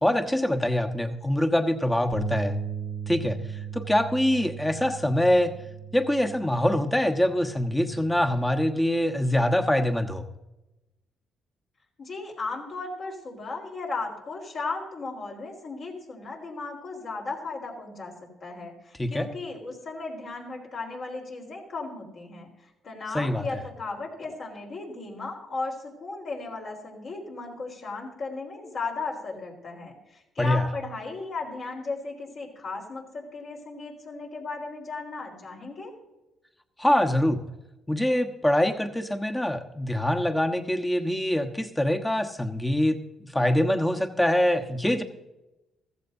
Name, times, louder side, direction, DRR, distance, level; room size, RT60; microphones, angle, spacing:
voice 1, 0.0-2.6 3.1-3.4 3.7-5.5 5.9-10.2 19.0-19.3 23.1-23.4 30.4-30.7 36.8-37.4 37.9-45.0, left 1 dB, 10° left, 5 dB, 1.2 m, -24 dB
Bass guitar, 2.1-8.4, right 7 dB, 65° right, 1.1 m, -37 dB
voice 2, 12.0-18.1 18.4-22.5 22.8-35.9, left 3 dB, 55° left, 0 dB, 3.9 m, -36 dB
15.0 x 14.5 x 2.7 m, 0.97 s
cardioid pair, 90°, 0 cm